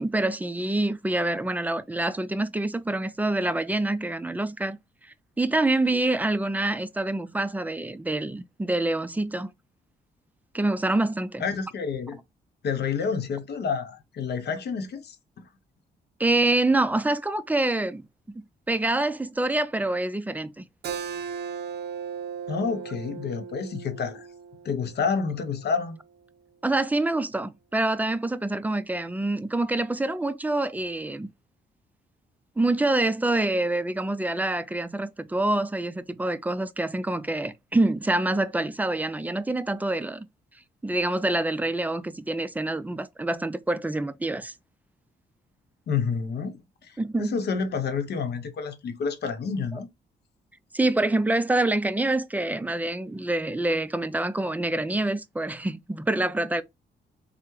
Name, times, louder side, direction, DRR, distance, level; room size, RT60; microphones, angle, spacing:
voice 1, 0.0-4.8 5.4-9.5 10.5-11.4 16.2-20.7 26.6-31.3 32.6-40.3 40.8-44.5 47.0-47.4 50.7-56.6, right 2 dB, 10° right, 0.3 m, -26 dB
voice 2, 11.4-12.2 12.6-15.5 22.5-24.3 24.6-26.0 45.9-49.9, left 5 dB, 65° left, 0.8 m, -29 dB
Keyboard (musical), 20.8-26.0, right 7 dB, 65° right, 0.5 m, -37 dB
3.3 x 2.1 x 3.0 m
cardioid pair, 80°, 18 cm